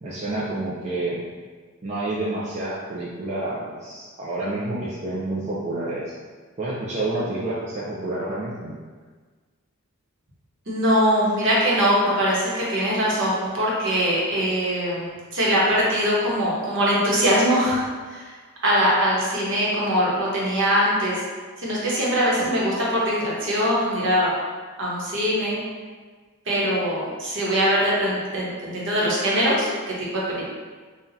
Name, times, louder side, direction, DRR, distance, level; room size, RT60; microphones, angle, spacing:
voice 1, 0.0-1.2 1.8-6.1 6.6-8.7 22.3-22.5, right 2 dB, 30° right, -8 dB, 0.5 m, -29 dB
voice 2, 10.7-15.1 15.3-18.3 18.6-21.2 21.6-24.3 24.8-25.6 26.5-30.4, equal, 55° right, -5 dB, 1.1 m, -22 dB
5.7 x 2.4 x 2.7 m, 1.4 s
head